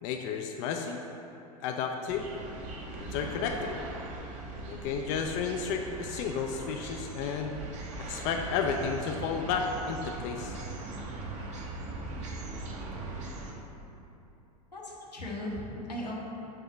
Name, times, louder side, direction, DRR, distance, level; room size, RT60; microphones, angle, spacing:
voice 1, 0.0-1.0 1.6-2.3 2.9-3.8 4.6-7.6 8.0-10.6, left 6 dB, 40° left, 3 dB, 0.4 m, -32 dB
sound 1, 2.1-13.5, right 2 dB, 35° right, 0.9 m, -40 dB
voice 2, 14.7-16.1, left 1 dB, 85° left, -4 dB, 1.2 m, -37 dB
7.3 x 2.7 x 5.6 m, 2.8 s
figure-of-eight pair, 90°, 20 cm